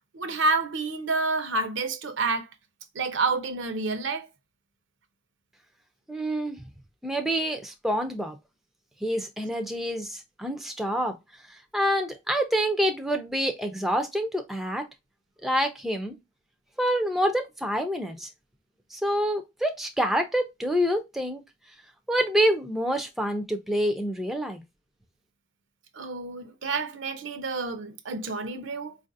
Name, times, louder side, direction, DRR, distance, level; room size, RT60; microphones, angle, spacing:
voice 1, 0.1-2.5 2.9-4.3 25.9-29.0, right 3 dB, 70° right, 0.6 m, -29 dB
voice 2, 6.1-6.6 7.0-8.4 9.0-11.1 11.5-14.9 15.4-16.2 16.8-18.3 18.9-21.4 22.1-24.6, equal, ahead, 0.4 m, -27 dB
4.6 x 2.5 x 2.6 m
head